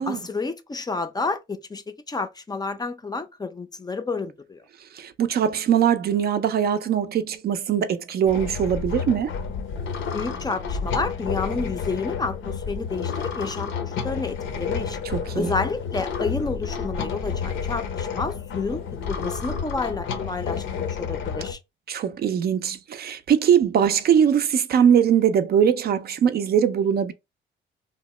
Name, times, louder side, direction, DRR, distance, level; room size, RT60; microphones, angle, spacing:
voice 1, 0.1-4.6 10.1-15.0 15.3-18.8 19.1-21.6, left 4 dB, 20° left, 0.4 m, -30 dB
voice 2, 4.9-9.3 15.0-15.5 21.9-27.1, right 8 dB, 55° right, 0.4 m, -21 dB
sound 1, 8.3-21.5, left 6 dB, 75° left, 0.7 m, -30 dB
2.8 x 2.0 x 3.1 m
cardioid pair, 90°, 20 cm